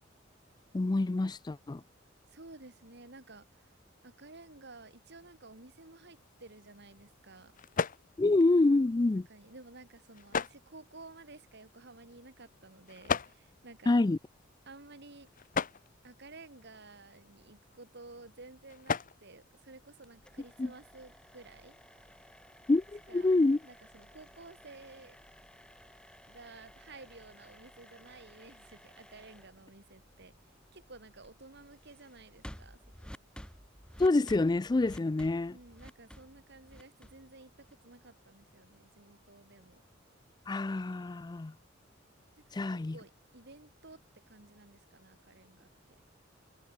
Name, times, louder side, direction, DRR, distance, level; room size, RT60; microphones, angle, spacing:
voice 1, 0.7-1.8 8.2-9.3 13.9-14.2 20.6-20.7 22.7-23.6 34.0-35.5 40.5-41.5 42.5-43.0, left 2 dB, 20° left, 0.4 m, -27 dB
voice 2, 2.3-3.7 4.0-7.5 9.3-14.0 14.7-15.3 16.0-21.8 23.1-23.3 23.6-25.2 26.3-33.1 35.5-39.8 42.4-46.0, right 3 dB, 60° right, 3.0 m, -53 dB
sound 1, 6.1-20.5, left 5 dB, 45° left, 0.8 m, -41 dB
sound 2, 20.0-38.0, equal, 5° left, 4.5 m, -54 dB
head